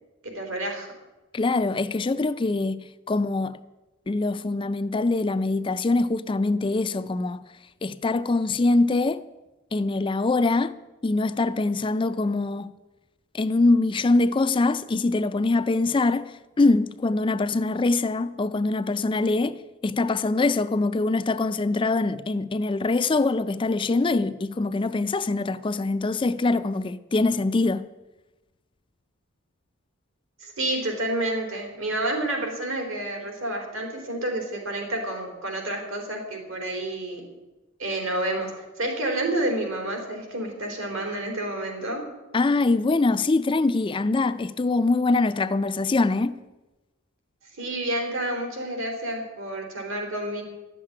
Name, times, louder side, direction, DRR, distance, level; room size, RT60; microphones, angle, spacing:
voice 1, 0.2-0.9 30.4-37.2 37.8-42.0 47.4-50.4, right 1 dB, 75° right, 3.8 m, -29 dB
voice 2, 1.3-3.6 4.1-7.4 7.8-9.2 9.7-10.7 11.0-12.7 13.3-27.9 42.3-46.4, left 3 dB, 25° left, 0.4 m, -23 dB
11.5 x 7.5 x 9.9 m
head